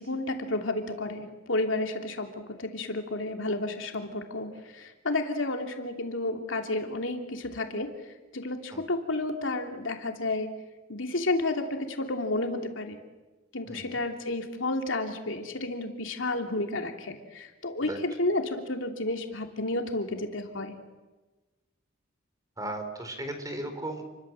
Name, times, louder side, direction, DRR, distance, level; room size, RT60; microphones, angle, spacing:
voice 1, 0.0-7.9 8.3-10.5 10.9-13.0 13.5-20.8, left 2 dB, 75° left, 4 dB, 3.0 m, -31 dB
voice 2, 13.7-14.0 17.8-18.0 22.6-24.0, right 1 dB, 20° right, 6 dB, 4.4 m, -36 dB
29.5 x 23.0 x 7.7 m, 1.2 s
head